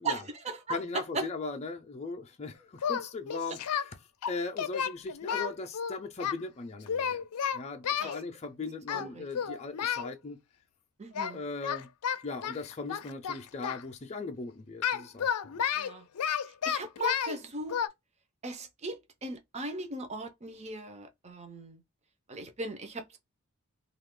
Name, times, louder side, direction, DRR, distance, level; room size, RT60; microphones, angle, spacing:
voice 1, 0.0-1.3 3.5-3.6 8.0-8.1 8.9-9.3 11.0-11.4 15.8-16.0 16.6-17.8 18.4-21.8 22.3-23.2, right 3 dB, 30° right, 0.6 m, -38 dB
voice 2, 0.7-3.9 4.2-7.2 7.5-10.4 11.3-11.9 12.2-15.5, left 3 dB, 30° left, 0.5 m, -39 dB
Singing, 2.8-3.9 4.2-6.4 6.9-8.2 8.9-9.1 9.3-10.1 11.2-11.4 11.6-13.8 14.8-17.4 17.7-17.9, left 8 dB, 85° left, 0.5 m, -31 dB
2.7 x 2.4 x 3.6 m
head